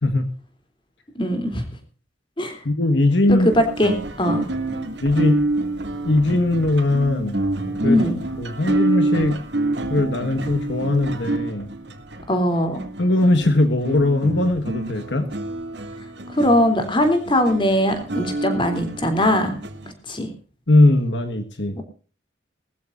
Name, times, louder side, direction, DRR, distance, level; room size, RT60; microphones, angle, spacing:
voice 1, 1.1-1.6 2.4-2.6 3.3-4.5 7.8-8.2 12.3-12.8 16.3-19.6 20.1-20.3 21.7-21.8, equal, 25° left, 7 dB, 3.2 m, -20 dB
voice 2, 2.6-3.5 5.0-5.4 6.0-7.4 7.8-8.0 8.4-9.4 9.9-11.7 13.0-15.3 20.7-21.8, left 2 dB, 70° left, 7 dB, 1.6 m, -19 dB
sound 1, 3.4-19.9, right 2 dB, 65° right, 2.6 m, -28 dB
20.5 x 14.5 x 2.6 m, 0.39 s
head